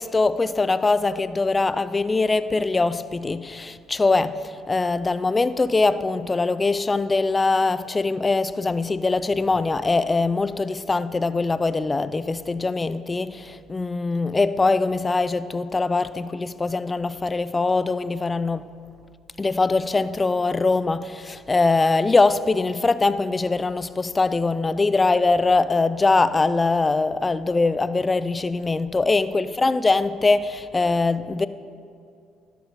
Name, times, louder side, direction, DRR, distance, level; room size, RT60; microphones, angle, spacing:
voice 1, 0.0-18.7 19.4-31.5, left 3 dB, 20° left, 0.4 m, -22 dB
12.0 x 7.5 x 5.3 m
cardioid pair, 90°, 0 cm